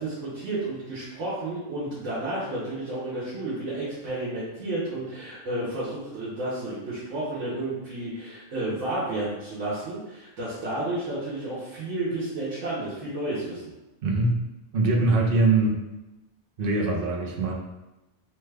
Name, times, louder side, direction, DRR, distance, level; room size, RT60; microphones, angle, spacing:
voice 1, 0.0-13.6, right 2 dB, 90° right, -9 dB, 1.2 m, -31 dB
voice 2, 14.0-14.4 14.7-15.8 16.6-17.5, right 3 dB, 55° right, -1 dB, 0.7 m, -22 dB
3.2 x 2.3 x 3.3 m, 1.0 s
omnidirectional pair, 1.3 m